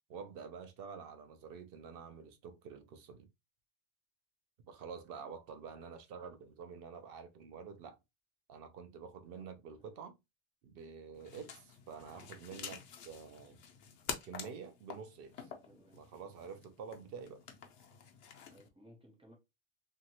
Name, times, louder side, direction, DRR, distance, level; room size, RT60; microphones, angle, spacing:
voice 1, 0.1-3.3 4.7-8.0 8.5-10.2 10.6-13.6 14.2-15.5 15.9-17.4, right 6 dB, 65° right, 0.7 m, -48 dB
voice 2, 9.3-9.9 15.6-16.0 18.5-19.4, equal, 5° right, 0.5 m, -61 dB
sound 1, 11.1-18.7, left 7 dB, 90° left, 0.9 m, -48 dB
2.8 x 2.8 x 2.8 m
omnidirectional pair, 1.1 m